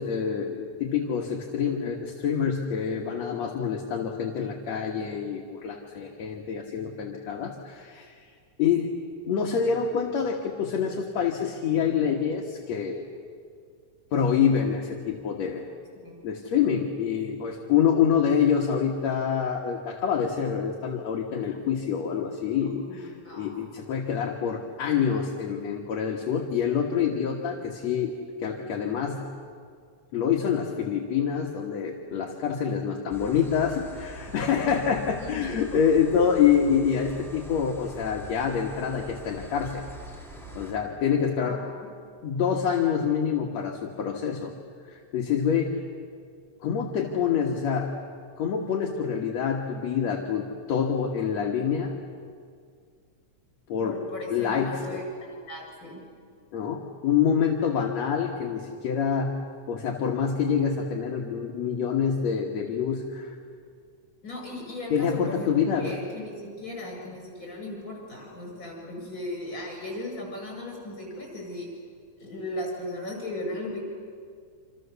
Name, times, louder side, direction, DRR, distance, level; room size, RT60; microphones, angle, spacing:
voice 1, 0.0-8.2 8.6-8.9 9.3-13.1 14.1-15.7 16.2-28.1 28.4-29.2 30.1-39.8 40.5-41.6 42.2-44.5 44.9-45.8 46.6-48.0 48.4-52.0 53.7-54.0 54.3-55.0 56.5-59.3 59.7-63.3 64.9-66.0, left 7 dB, 65° left, 1 dB, 2.7 m, -26 dB
voice 2, 22.6-23.5 35.2-35.6 41.3-41.5 53.8-56.1 64.2-71.7 72.2-73.8, left 1 dB, 30° left, 0 dB, 7.6 m, -37 dB
sound 1, 33.1-40.7, right 2 dB, ahead, 3.0 m, -43 dB
27.0 x 26.5 x 7.0 m, 2.1 s
omnidirectional pair, 3.4 m